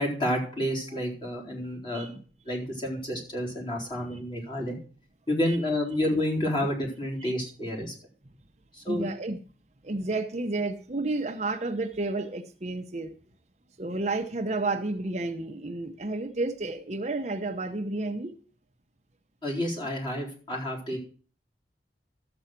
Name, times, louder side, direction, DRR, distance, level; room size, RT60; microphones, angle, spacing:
voice 1, 0.0-2.2 2.5-4.8 5.3-7.9 8.7-9.1 19.4-21.0, left 1 dB, 25° left, -3 dB, 4.0 m, -29 dB
voice 2, 8.9-9.4 9.8-13.1 13.8-18.3, right 2 dB, 40° right, 6 dB, 0.9 m, -31 dB
12.5 x 7.9 x 5.9 m, 0.41 s
head